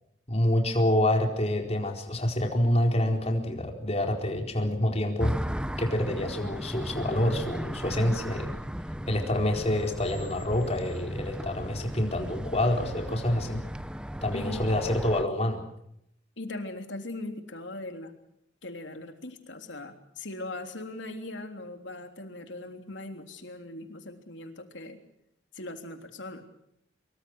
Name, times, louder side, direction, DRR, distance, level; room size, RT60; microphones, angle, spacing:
voice 1, 0.3-5.3 5.8-8.5 9.1-13.6 14.2-15.6, left 1 dB, 35° left, 3 dB, 4.4 m, -27 dB
sound 1, 5.2-15.2, equal, 5° right, 0.9 m, -36 dB
voice 2, 14.3-14.6 16.4-18.1 18.6-25.0 25.5-26.4, left 2 dB, 70° left, 6 dB, 3.4 m, -40 dB
25.0 x 24.0 x 6.3 m, 0.76 s
head